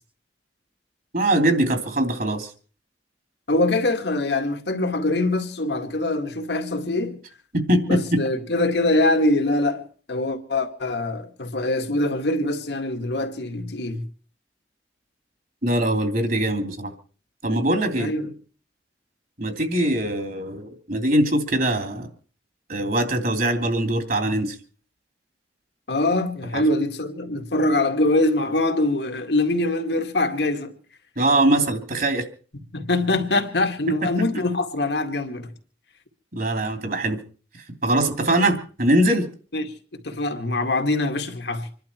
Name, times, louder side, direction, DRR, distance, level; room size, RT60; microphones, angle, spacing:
voice 1, 1.1-2.5 7.5-8.2 15.6-16.9 17.4-18.1 19.4-22.1 22.7-24.5 26.5-26.6 31.2-32.2 36.3-37.2 37.8-39.2, right 1 dB, 50° right, 3.0 m, -22 dB
voice 2, 3.5-7.2 7.9-14.0 18.0-18.3 25.9-30.8 32.7-35.5 39.5-39.7 40.0-41.7, left 2 dB, 70° left, 2.1 m, -23 dB
26.5 x 11.5 x 4.5 m
head